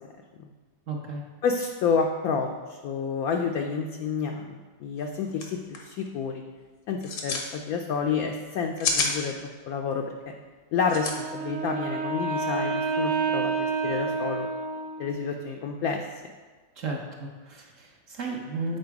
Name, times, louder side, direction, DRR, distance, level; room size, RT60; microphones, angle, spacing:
voice 1, 0.9-1.2 16.8-18.8, right 3 dB, 55° right, 0 dB, 1.0 m, -34 dB
voice 2, 1.4-6.4 6.9-9.3 9.7-10.0 10.7-14.5 15.0-16.0, left 5 dB, 70° left, 3 dB, 0.8 m, -29 dB
sound 1, 5.0-5.1 5.3-5.4 5.7-6.1 6.9-7.5 8.5-9.1 10.9-11.1, left 4 dB, 85° left, 1.6 m, -27 dB
Wind instrument woodwind instrument, 11.1-15.3, right 4 dB, 90° right, 1.5 m, -29 dB
7.8 x 4.3 x 4.7 m, 1.4 s
omnidirectional pair, 1.9 m